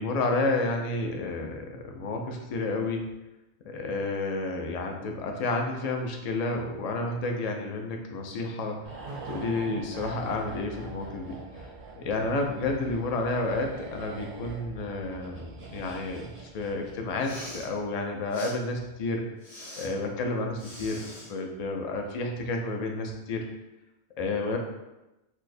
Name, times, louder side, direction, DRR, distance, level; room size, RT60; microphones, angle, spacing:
voice 1, 0.0-3.1 3.6-8.8 9.3-11.4 12.0-19.3 19.8-23.5 24.2-24.6, left 2 dB, 55° left, 2 dB, 0.4 m, -30 dB
sound 1, 8.8-17.4 17.7-17.8, right 3 dB, 55° right, 0.7 m, -43 dB
Respiratory sounds, 17.1-17.7 18.3-18.5 19.4-19.9 20.6-21.3, left 1 dB, 80° left, 1.3 m, -43 dB
4.5 x 2.0 x 2.5 m, 0.98 s
omnidirectional pair, 1.1 m